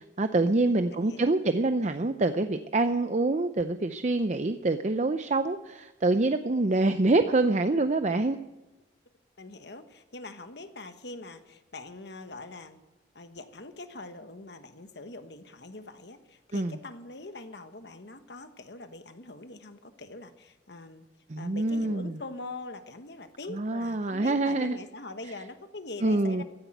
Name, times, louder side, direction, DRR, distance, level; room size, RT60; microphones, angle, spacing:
voice 1, 0.0-8.4 16.5-16.8 21.3-22.2 23.5-24.8 26.0-26.4, right 2 dB, 40° right, 9 dB, 0.6 m, -26 dB
voice 2, 0.6-1.3 9.4-12.8 13.1-21.0 21.4-26.4, left 2 dB, 60° left, 8 dB, 1.4 m, -43 dB
15.0 x 10.0 x 9.2 m, 1.0 s
head